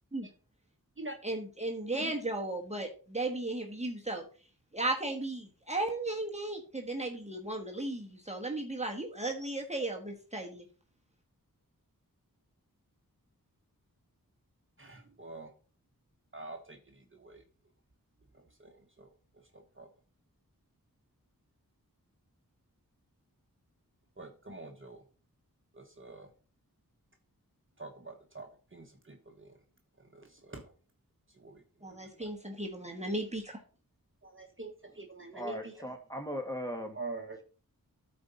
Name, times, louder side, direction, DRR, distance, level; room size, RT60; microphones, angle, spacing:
voice 1, 1.2-4.2 4.7-10.6 31.8-33.6, right 2 dB, 20° right, 1 dB, 1.3 m, -35 dB
voice 2, 14.8-15.5 16.3-17.4 18.3-19.1 19.5-19.9 24.2-25.0 25.7-26.3 27.8-29.5 30.0-30.7 31.3-31.6 31.9-32.3 34.2-35.9 36.9-37.4, right 3 dB, 35° right, 3 dB, 1.2 m, -46 dB
voice 3, 35.3-37.0, equal, 10° left, 3 dB, 1.8 m, -38 dB
13.0 x 4.4 x 4.1 m, 0.39 s
wide cardioid pair, 60°, 35 cm